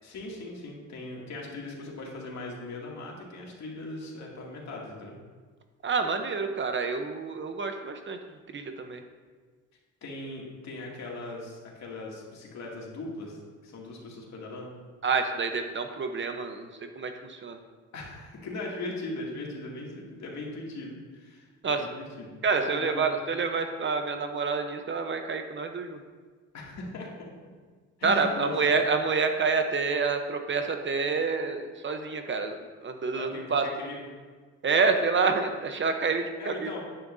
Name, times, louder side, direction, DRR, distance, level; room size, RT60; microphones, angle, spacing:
voice 1, 0.0-5.1 10.0-14.7 17.9-23.1 26.5-27.3 28.0-28.6 28.9-29.0 33.1-34.1 36.4-36.8, left 2 dB, 65° left, -3 dB, 2.5 m, -39 dB
voice 2, 5.8-8.2 8.5-9.0 15.0-16.7 17.0-17.6 21.6-21.8 22.4-26.0 28.0-33.6 34.6-36.8, right 4 dB, 40° right, 6 dB, 0.9 m, -28 dB
10.5 x 9.8 x 2.7 m, 1.5 s
cardioid pair, 90°, 30 cm